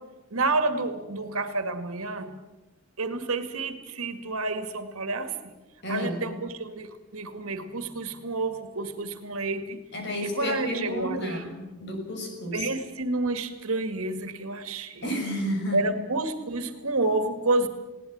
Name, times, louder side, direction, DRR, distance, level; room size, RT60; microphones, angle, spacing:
voice 1, 0.3-2.4 3.0-5.5 5.9-9.8 10.2-11.4 12.5-15.0 15.7-17.7, right 2 dB, 80° right, 9 dB, 2.2 m, -29 dB
voice 2, 5.8-6.3 9.9-12.7 15.0-15.8, equal, 50° left, 4 dB, 5.9 m, -31 dB
21.0 x 18.0 x 8.8 m, 1.1 s
head